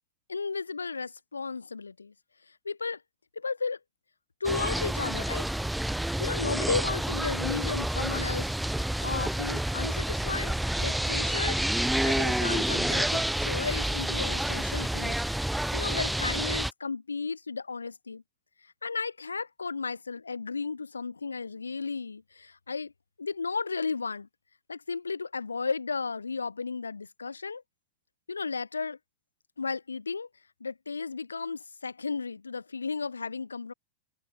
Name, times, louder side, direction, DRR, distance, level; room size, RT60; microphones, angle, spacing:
voice 1, 0.3-2.1 2.5-3.0 3.4-3.8 4.4-5.5 6.2-8.5 9.0-11.7 12.0-15.2 15.7-18.2 18.8-22.9 23.2-24.3 24.7-27.6 28.3-29.0 29.6-30.3 30.6-33.7, left 4 dB, 75° left, 0.6 m, -34 dB
sound 1, 4.4-16.7, right 1 dB, 5° right, 0.4 m, -29 dB
open air
figure-of-eight pair, 90°, 0 cm